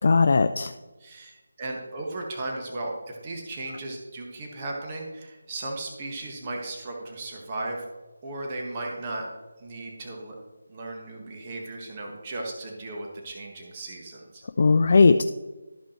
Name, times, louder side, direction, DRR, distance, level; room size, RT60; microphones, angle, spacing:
voice 1, 0.0-0.7 14.6-15.2, left 4 dB, 50° left, 8 dB, 0.4 m, -18 dB
voice 2, 1.0-7.8 8.2-9.3 9.6-10.4 10.7-14.4, right 2 dB, 25° right, -1 dB, 1.3 m, -36 dB
12.5 x 5.3 x 4.4 m, 1.2 s
figure-of-eight pair, 165°, 0 cm